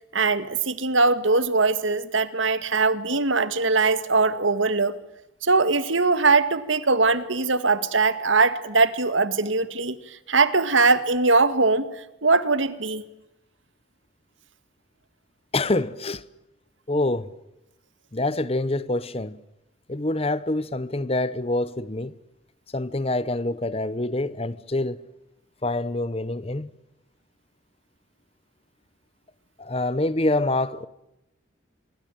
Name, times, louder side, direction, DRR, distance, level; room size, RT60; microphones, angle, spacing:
voice 1, 0.1-4.9 5.4-11.9 12.2-13.0, right 3 dB, 80° right, 1.9 m, -21 dB
voice 2, 15.5-16.2 16.9-17.3 18.1-19.4 19.9-22.2 22.7-25.0 25.6-26.7 29.6-30.9, left 2 dB, 30° left, 0.9 m, -26 dB
26.0 x 24.0 x 9.1 m
head